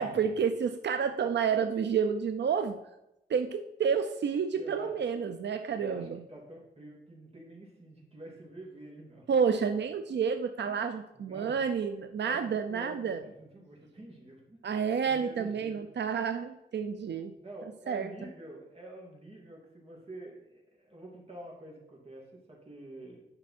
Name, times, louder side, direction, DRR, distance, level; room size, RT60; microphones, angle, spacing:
voice 1, 0.0-2.8 3.3-6.2 9.3-13.2 14.6-17.3 17.9-18.1, right 6 dB, 85° right, 8 dB, 0.5 m, -30 dB
voice 2, 4.5-4.9 5.5-9.3 10.6-14.6 15.1-15.9 17.3-23.2, right 1 dB, 35° right, -3 dB, 2.6 m, -47 dB
9.8 x 5.4 x 4.3 m, 0.88 s
wide cardioid pair, 125°, 18 cm